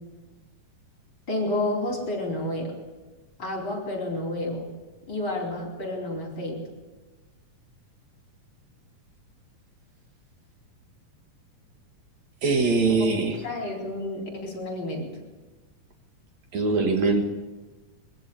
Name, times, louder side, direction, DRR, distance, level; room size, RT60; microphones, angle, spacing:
voice 1, 1.3-2.8 3.4-4.7 5.1-6.6 12.9-13.0 13.3-15.1, left 1 dB, 35° left, 2 dB, 4.6 m, -30 dB
voice 2, 12.4-13.4 16.5-17.3, right 3 dB, 60° right, 4 dB, 2.7 m, -22 dB
23.0 x 15.0 x 8.6 m, 1.2 s
omnidirectional pair, 3.8 m